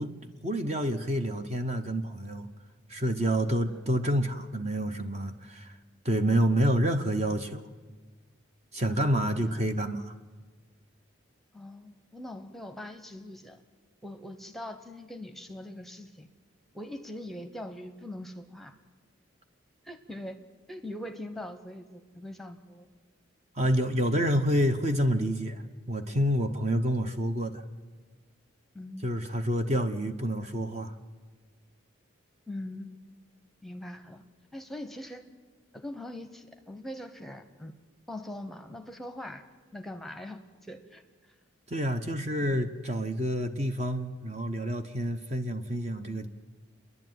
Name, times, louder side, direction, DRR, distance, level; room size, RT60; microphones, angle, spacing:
voice 1, 0.0-2.5 2.9-5.8 6.0-7.7 8.7-10.1 23.5-27.6 29.0-30.9 41.7-46.3, equal, 30° right, 7 dB, 0.9 m, -28 dB
voice 2, 8.9-9.5 11.5-13.6 14.0-16.3 16.7-18.7 19.8-20.4 20.7-22.9 28.7-29.1 32.5-33.1 33.6-34.2 34.5-35.2 35.7-37.8 38.1-39.4 39.7-41.0 42.4-42.6, left 1 dB, ahead, 7 dB, 1.0 m, -42 dB
28.5 x 11.0 x 9.3 m, 1.4 s
head